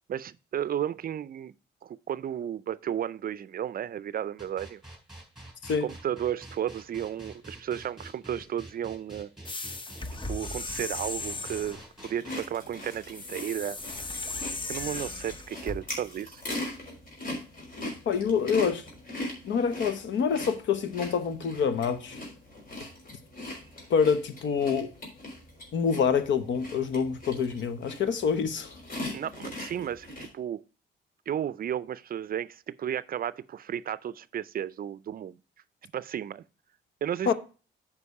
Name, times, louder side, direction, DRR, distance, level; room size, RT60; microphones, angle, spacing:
voice 1, 0.1-1.5 1.8-4.8 5.8-9.3 10.3-13.8 14.7-16.4 29.1-30.6 31.3-35.4 35.9-36.4 37.0-37.3, right 10 dB, 45° right, 0.5 m, -33 dB
sound 1, 4.4-12.4, right 1 dB, ahead, 3.8 m, -46 dB
sound 2, 9.5-11.9 13.1-15.8, left 2 dB, 25° left, 0.9 m, -36 dB
sound 3, 12.0-30.3, left 1 dB, 45° left, 3.9 m, -41 dB
voice 2, 17.8-18.9 19.4-22.2 23.9-24.9 25.7-28.7 37.3-37.4, left 6 dB, 70° left, 1.1 m, -26 dB
8.3 x 5.2 x 4.7 m
cardioid pair, 90°, 20 cm